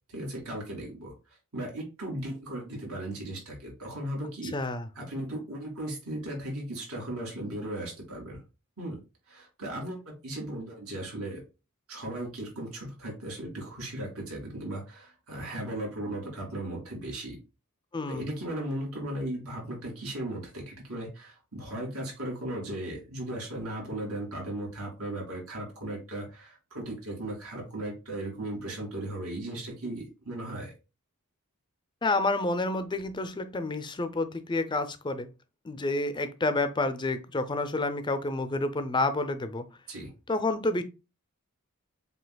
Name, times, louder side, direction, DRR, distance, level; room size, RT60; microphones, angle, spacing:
voice 1, 0.1-4.5 4.9-8.4 8.8-9.0 9.3-11.4 11.9-17.4 18.1-30.7 39.9-40.1, right 1 dB, 75° right, 2.5 m, -37 dB
voice 2, 4.5-4.9 17.9-18.3 32.0-35.3 35.6-39.7 40.3-40.8, left 2 dB, 20° left, 0.4 m, -29 dB
7.6 x 2.8 x 2.2 m
head